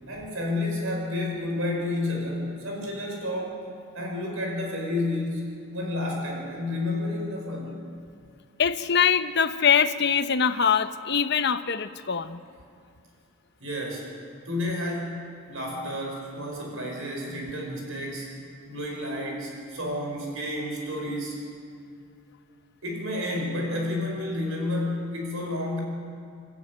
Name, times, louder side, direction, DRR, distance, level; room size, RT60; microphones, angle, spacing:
voice 1, 0.1-3.6 3.9-5.4 5.7-7.7 13.6-14.1 14.4-18.3 18.7-21.4 22.8-25.8, left 1 dB, 65° right, 0 dB, 4.9 m, -30 dB
voice 2, 8.6-12.4, left 7 dB, 50° left, 11 dB, 0.9 m, -23 dB
29.0 x 13.5 x 9.3 m, 2.5 s
head